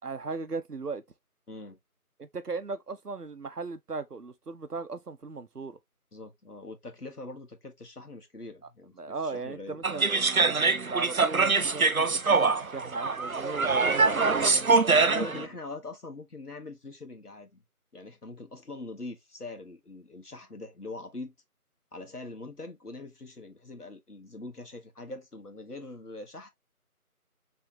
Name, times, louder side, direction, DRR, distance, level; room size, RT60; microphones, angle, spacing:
voice 1, 0.0-1.0 2.2-5.8 9.0-15.5, right 4 dB, 90° right, 0.9 m, -38 dB
voice 2, 1.5-1.8 6.1-8.9 9.2-9.8 15.0-17.6 17.9-21.3 21.9-26.5, left 2 dB, 80° left, 1.5 m, -42 dB
sound 1, 9.8-15.5, right 4 dB, 65° right, 0.6 m, -24 dB
4.4 x 3.5 x 2.8 m
figure-of-eight pair, 180°, 45 cm